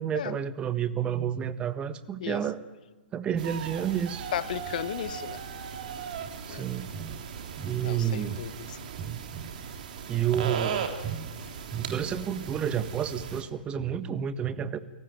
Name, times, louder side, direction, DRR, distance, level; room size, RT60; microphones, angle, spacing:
voice 1, 0.0-2.6 3.1-4.3 6.5-7.2 7.6-8.4 9.0-9.6 10.1-11.3 11.7-14.8, right 9 dB, 20° right, 12 dB, 1.3 m, -30 dB
sound 1, 3.4-13.4, right 7 dB, 55° right, 3.5 m, -38 dB
voice 2, 4.3-5.4 6.5-6.6 7.8-8.5, left 11 dB, 55° left, 17 dB, 1.1 m, -34 dB
29.5 x 18.0 x 9.3 m, 1.2 s
figure-of-eight pair, 120°, 5 cm